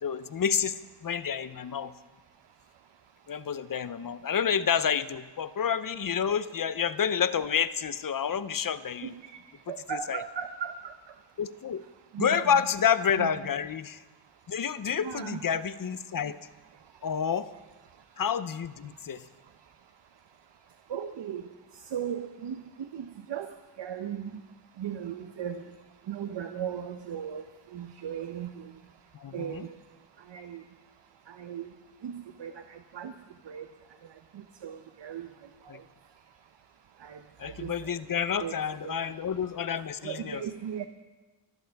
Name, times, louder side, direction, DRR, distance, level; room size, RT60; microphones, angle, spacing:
voice 1, 0.0-1.9 3.3-9.1 9.9-10.2 11.4-11.8 12.2-14.0 14.5-16.4 17.0-17.5 18.2-19.3 29.1-29.6 35.7-35.8 37.4-40.4, left 7 dB, 50° left, 14 dB, 0.7 m, -29 dB
voice 2, 9.7-10.9 12.1-12.6 13.2-13.4 15.0-15.4 20.9-21.4 21.9-22.6 22.9-23.5 23.8-24.3 24.8-25.6 26.1-27.4 27.7-28.5 29.3-29.7 30.3-30.6 31.3-31.7 32.0-33.1 33.5-33.7 34.6-35.3 37.0-37.7 38.4-38.6 38.8-39.0 40.0-40.9, right 9 dB, 90° right, 8 dB, 0.8 m, -36 dB
23.5 x 14.5 x 3.5 m, 1.2 s
wide cardioid pair, 95°, 42 cm